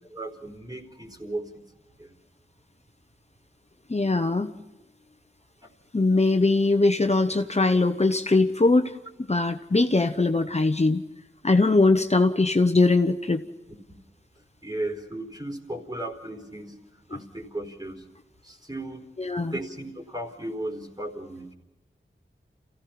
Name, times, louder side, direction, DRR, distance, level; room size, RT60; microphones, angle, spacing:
voice 1, 0.1-1.6 2.0-2.1 5.6-5.7 13.7-14.0 14.6-16.8 17.1-18.0 18.4-19.0 19.5-21.5, right 1 dB, 20° right, 4 dB, 4.4 m, -36 dB
voice 2, 3.9-4.5 5.9-8.9 9.3-11.0 11.4-13.4 17.1-17.2 19.2-19.5, left 3 dB, 35° left, 7 dB, 1.1 m, -21 dB
28.5 x 16.0 x 6.0 m, 1.0 s
wide cardioid pair, 50°, 20 cm